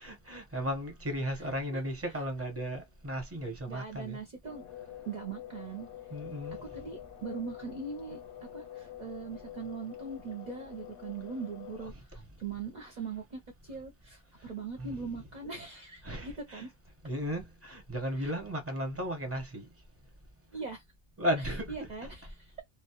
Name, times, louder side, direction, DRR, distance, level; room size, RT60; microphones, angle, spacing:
voice 1, 0.0-4.2 6.1-6.8 11.9-12.2 14.8-15.1 16.0-16.7 17.0-19.7 21.2-21.9, equal, 15° right, 0.8 m, -35 dB
voice 2, 3.7-4.6 5.0-5.9 6.7-16.7 18.2-18.3 20.5-20.8 21.7-22.6, right 5 dB, 50° right, 0.7 m, -41 dB
sound 1, 4.5-11.9, left 11 dB, 80° left, 0.9 m, -46 dB
2.2 x 2.0 x 2.8 m
omnidirectional pair, 1.1 m